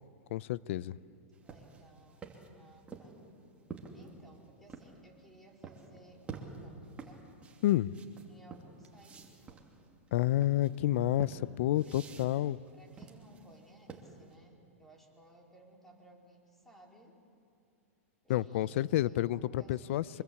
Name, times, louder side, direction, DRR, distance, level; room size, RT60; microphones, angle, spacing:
voice 1, 0.3-1.0 7.6-7.9 10.1-12.6 18.3-20.2, left 14 dB, 60° left, 20 dB, 0.6 m, -29 dB
sound 1, 1.3-4.9 5.6-5.9 6.3-14.3, right 5 dB, 15° right, 2.6 m, -49 dB
voice 2, 1.4-3.2 3.9-7.3 8.3-9.9 11.8-12.3 12.7-17.2 18.2-20.2, right 1 dB, 5° left, 0 dB, 4.1 m, -60 dB
25.0 x 21.0 x 8.5 m, 2.5 s
hypercardioid pair, 140°, 8 cm